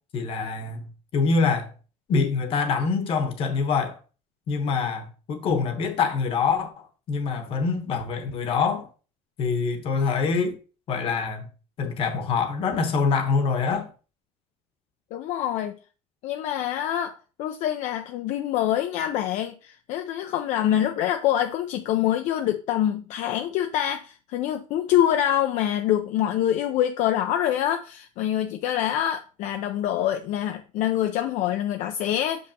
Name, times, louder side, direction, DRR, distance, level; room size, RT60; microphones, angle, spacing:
voice 1, 0.1-0.9 1.1-1.7 2.1-4.0 4.5-8.9 9.4-10.5 10.9-11.4 11.8-13.9, left 5 dB, 45° left, 1.0 m, -25 dB
voice 2, 15.1-15.8 16.2-32.5, left 11 dB, 65° left, 0.5 m, -25 dB
6.4 x 5.4 x 2.8 m
cardioid pair, 175°, 13 cm